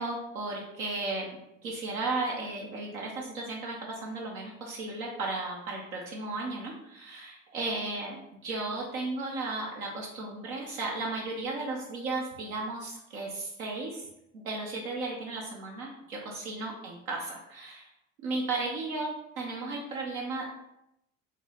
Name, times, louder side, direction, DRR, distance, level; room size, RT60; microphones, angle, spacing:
voice 1, 0.0-14.0 14.3-17.9 18.2-20.5, right 2 dB, 85° right, -2 dB, 0.7 m, -35 dB
4.4 x 2.1 x 3.8 m, 0.83 s
hypercardioid pair, 65°, 41 cm